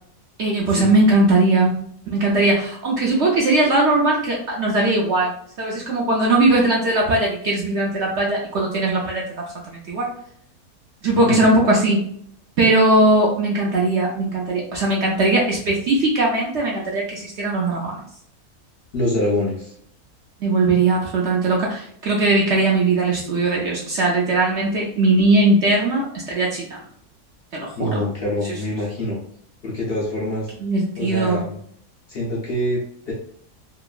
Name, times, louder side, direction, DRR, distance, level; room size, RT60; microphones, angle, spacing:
voice 1, 0.4-1.8 2.1-10.1 11.0-12.0 12.6-18.0 20.4-26.8 27.5-28.0 30.6-31.4, right 2 dB, 65° right, -3 dB, 0.7 m, -19 dB
voice 2, 18.9-19.7 27.8-29.2 29.6-30.5 31.0-31.6 32.1-33.1, left 1 dB, 55° left, -4 dB, 0.7 m, -25 dB
2.9 x 2.5 x 2.3 m, 0.65 s
omnidirectional pair, 1.6 m